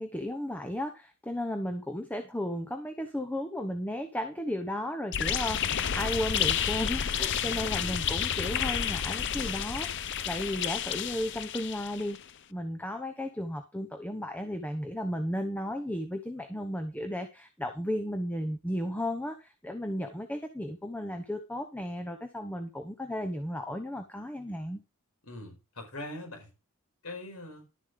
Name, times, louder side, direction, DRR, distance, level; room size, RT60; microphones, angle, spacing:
voice 1, 0.0-12.2 12.5-24.8, left 1 dB, 5° left, 1.0 m, -34 dB
sound 1, 5.1-12.2, left 8 dB, 55° left, 0.6 m, -30 dB
voice 2, 7.4-8.1 25.2-26.5 27.0-27.6, left 1 dB, 75° left, 5.0 m, -42 dB
12.0 x 7.2 x 5.1 m
head